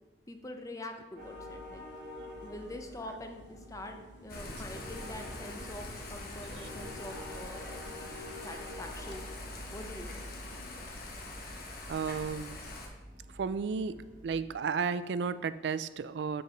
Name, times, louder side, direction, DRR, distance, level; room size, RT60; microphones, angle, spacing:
voice 1, 0.3-1.8 2.4-9.3 9.7-10.3, left 1 dB, 20° left, 5 dB, 0.7 m, -45 dB
sound 1, 1.2-10.8, left 2 dB, 90° left, 0.6 m, -60 dB
sound 2, 1.2-14.5, equal, 55° right, 1.3 m, -48 dB
Thunder / Rain, 4.3-12.9, left 2 dB, 60° left, 1.2 m, -44 dB
voice 2, 11.9-12.6 13.3-14.0 14.2-16.4, right 5 dB, 70° right, 14 dB, 0.4 m, -33 dB
6.3 x 4.7 x 5.1 m, 1.1 s
head